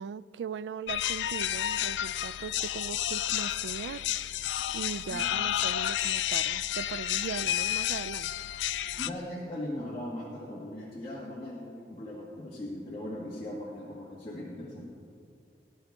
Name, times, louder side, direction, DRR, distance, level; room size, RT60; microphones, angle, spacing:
voice 1, 0.0-4.0 4.7-8.3, right 6 dB, 80° right, 0.3 m, -39 dB
sound 1, 0.9-9.1, left 12 dB, 85° left, 0.4 m, -31 dB
voice 2, 9.0-14.9, left 1 dB, 30° left, 1.7 m, -39 dB
19.5 x 11.0 x 3.5 m
head